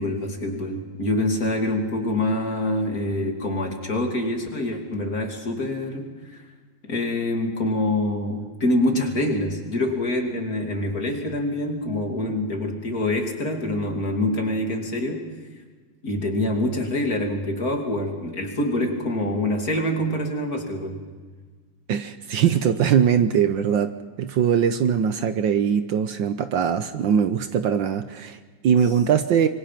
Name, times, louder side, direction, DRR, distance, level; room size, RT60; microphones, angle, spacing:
voice 1, 0.0-6.4 6.8-15.3 16.0-21.0, left 1 dB, 40° left, 3 dB, 3.2 m, -25 dB
voice 2, 21.9-29.5, right 8 dB, 65° right, 10 dB, 1.5 m, -21 dB
26.0 x 24.0 x 6.0 m, 1.5 s
omnidirectional pair, 2.4 m